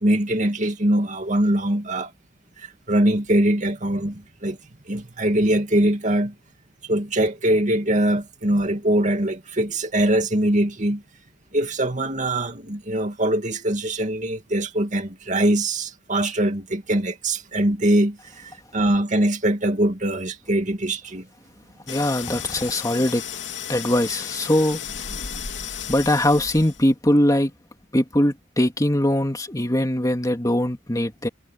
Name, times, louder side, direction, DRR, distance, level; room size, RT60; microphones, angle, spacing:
voice 1, 0.0-2.1 2.6-4.6 4.9-6.3 6.9-11.0 11.5-21.2, right 1 dB, 40° right, 2.4 m, -22 dB
sound 1, 21.9-26.9, left 8 dB, 70° left, 3.4 m, -34 dB
voice 2, 21.9-23.2 23.7-24.8 25.9-27.5 27.9-31.3, left 1 dB, 20° left, 2.5 m, -21 dB
head